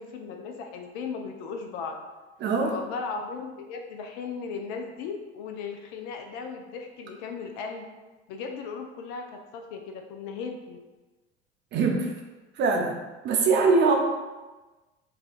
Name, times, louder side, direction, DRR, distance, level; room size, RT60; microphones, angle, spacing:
voice 1, 0.0-2.0 2.7-7.9 8.3-9.2 9.5-10.8, left 5 dB, 50° left, 3 dB, 0.5 m, -36 dB
voice 2, 2.4-2.8 11.7-12.1 12.6-13.0 13.2-13.9, right 4 dB, 35° right, 2 dB, 0.5 m, -22 dB
4.7 x 2.3 x 2.4 m, 1.2 s
figure-of-eight pair, 65°, 33 cm